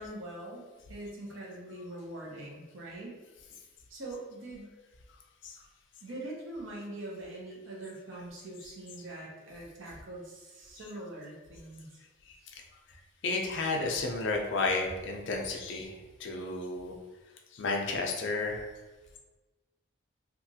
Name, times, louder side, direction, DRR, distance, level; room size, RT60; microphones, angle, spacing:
voice 1, 0.0-3.2 3.9-4.7 6.0-12.0, right 1 dB, 70° right, -2 dB, 0.7 m, -43 dB
voice 2, 13.2-15.9 16.2-16.9 17.5-18.7, left 3 dB, 60° left, 2 dB, 0.4 m, -32 dB
2.9 x 2.4 x 2.7 m, 1.2 s
head